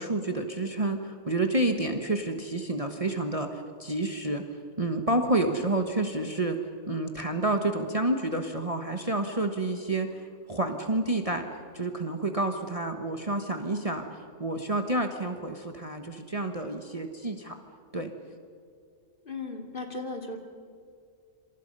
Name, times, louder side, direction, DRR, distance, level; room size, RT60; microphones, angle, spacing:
voice 1, 0.0-4.4 4.8-6.6 6.9-10.1 10.5-11.5 11.7-14.1 14.4-17.6 17.9-18.1, right 2 dB, 25° right, 5 dB, 1.4 m, -29 dB
voice 2, 19.2-20.4, left 3 dB, 40° left, 3 dB, 2.8 m, -36 dB
27.0 x 26.5 x 5.5 m, 2.3 s
omnidirectional pair, 1.4 m